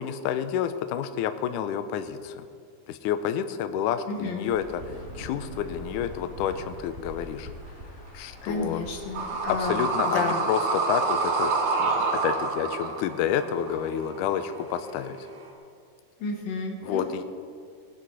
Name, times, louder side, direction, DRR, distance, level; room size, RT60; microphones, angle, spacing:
voice 1, 0.0-2.4 2.9-7.5 8.1-8.8 9.6-11.5 11.8-15.2 16.8-17.2, left 9 dB, 90° left, 10 dB, 1.8 m, -29 dB
voice 2, 4.1-4.5 8.4-10.4 16.2-17.2, left 3 dB, 70° left, 2 dB, 3.0 m, -32 dB
Insect / Thunder / Rain, 4.4-9.7, equal, 25° right, 1.7 m, -42 dB
sound 1, 9.1-15.5, right 4 dB, 85° right, 3.8 m, -28 dB
19.0 x 10.5 x 4.7 m, 2.2 s
omnidirectional pair, 4.4 m